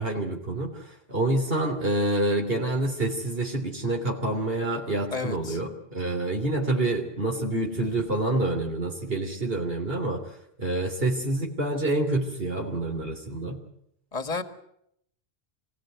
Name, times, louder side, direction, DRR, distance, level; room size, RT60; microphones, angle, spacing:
voice 1, 0.0-10.2 10.6-13.6, right 2 dB, 60° right, 2 dB, 3.4 m, -27 dB
voice 2, 5.1-5.6 14.1-14.4, left 4 dB, 35° left, 9 dB, 1.7 m, -31 dB
25.5 x 17.0 x 9.2 m, 0.76 s
omnidirectional pair, 1.1 m